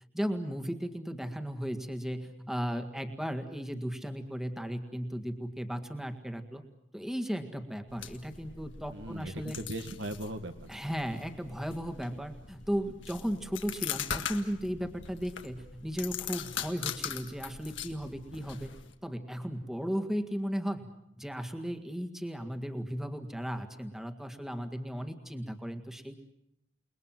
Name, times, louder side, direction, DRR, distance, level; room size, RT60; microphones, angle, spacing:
voice 1, 0.1-6.6 6.9-9.6 10.7-18.7 19.0-20.9 21.2-26.2, equal, ahead, 5 dB, 1.8 m, -36 dB
sound 1, 7.9-18.9, left 8 dB, 70° left, 1.8 m, -41 dB
voice 2, 8.9-10.7, right 1 dB, 65° right, 7 dB, 1.7 m, -38 dB
29.0 x 21.0 x 7.6 m, 0.79 s
head